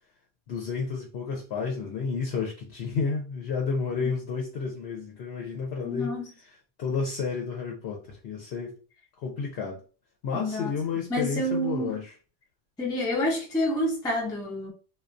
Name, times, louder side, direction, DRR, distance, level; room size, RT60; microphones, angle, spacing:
voice 1, 0.5-6.2 6.8-8.8 9.2-9.8 10.2-12.1, left 5 dB, 70° left, 0.8 m, -31 dB
voice 2, 5.8-6.2 10.3-10.7 11.1-11.9 12.8-14.7, left 1 dB, 5° left, 0.4 m, -28 dB
2.2 x 2.2 x 2.5 m
omnidirectional pair, 1.2 m